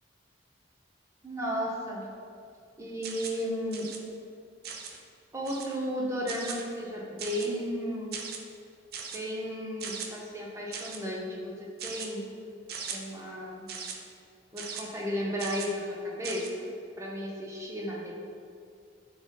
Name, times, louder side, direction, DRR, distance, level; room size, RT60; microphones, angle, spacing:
voice 1, 1.2-2.0 2.8-3.9 5.3-8.1 9.1-12.2 12.9-13.7 14.5-16.7 17.0-18.1, equal, 15° right, -3 dB, 0.6 m, -34 dB
sound 1, 3.0-3.4 3.7-4.0 4.6-5.0 5.4-5.8 6.3-6.6 7.2-7.6 8.1-8.4 8.9-9.2 9.8-10.1 10.7-11.0 11.8-12.1 12.7-13.0 13.7-14.0 14.6-14.8 15.4-15.7 16.2-16.5, right 6 dB, 55° right, 0.4 m, -39 dB
3.8 x 3.7 x 3.7 m, 2.4 s
head